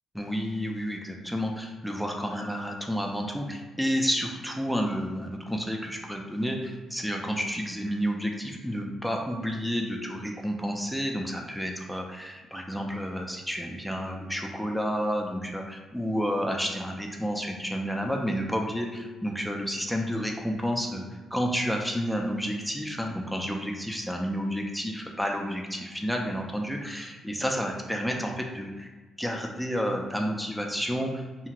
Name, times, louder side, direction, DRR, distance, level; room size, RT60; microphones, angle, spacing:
voice 1, 0.1-21.0 21.3-28.9 29.2-31.5, equal, ahead, 1 dB, 0.3 m, -30 dB
2.8 x 2.4 x 2.9 m, 1.3 s
cardioid pair, 90°, 0 cm